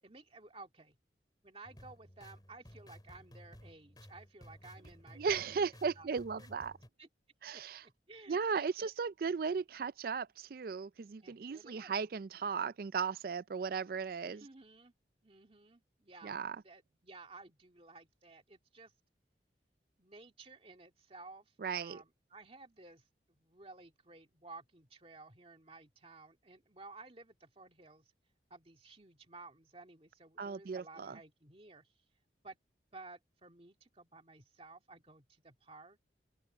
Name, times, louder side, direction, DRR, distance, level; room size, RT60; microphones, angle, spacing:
voice 1, 0.0-1.0 1.4-5.6 6.0-6.5 7.0-7.1 7.5-8.9 11.2-11.9 14.2-14.9 15.2-16.4 16.6-18.9 20.0-28.1 28.5-31.9 32.4-32.6 32.9-36.0, right 3 dB, 30° right, 2.2 m, -55 dB
sound 1, 1.6-6.9, equal, 20° left, 4.6 m, -56 dB
voice 2, 5.2-6.7 7.4-7.8 8.3-14.5 16.2-16.6 21.6-22.0 30.4-31.2, right 5 dB, 55° right, 0.4 m, -36 dB
head